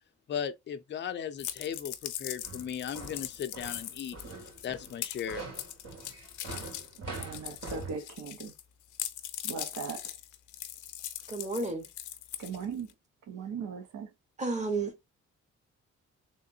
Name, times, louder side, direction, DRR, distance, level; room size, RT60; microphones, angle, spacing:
voice 1, 0.3-4.2 4.6-5.5, left 8 dB, 40° left, 0.5 m, -37 dB
sound 1, 1.4-8.6 8.9-12.9, left 12 dB, 85° left, 0.6 m, -41 dB
sound 2, 2.4-8.0, right 3 dB, 60° right, 2.7 m, -43 dB
voice 2, 7.1-8.5 9.4-10.1 12.4-12.9 13.3-14.1, right 6 dB, 80° right, 1.0 m, -39 dB
voice 3, 11.3-11.9 14.4-15.0, right 3 dB, 25° right, 1.3 m, -31 dB
3.5 x 3.1 x 2.6 m
cardioid pair, 95°, 29 cm